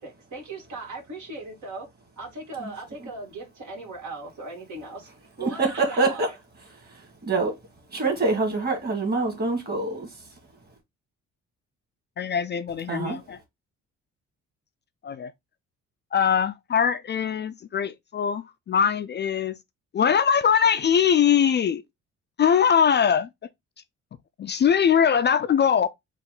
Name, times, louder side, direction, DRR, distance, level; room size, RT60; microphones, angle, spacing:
voice 1, 0.0-1.9 2.2-5.1 5.4-6.2, right 2 dB, 75° right, 2.1 m, -38 dB
voice 2, 5.4-6.3 6.9-7.6 7.9-10.1 12.9-13.2, right 3 dB, 30° right, 1.9 m, -25 dB
voice 3, 12.2-13.4 15.0-15.3 16.1-19.5 19.9-21.8 22.4-23.3 24.4-25.9, left 7 dB, 35° left, 0.4 m, -22 dB
4.1 x 2.5 x 3.7 m
cardioid pair, 90°, 30 cm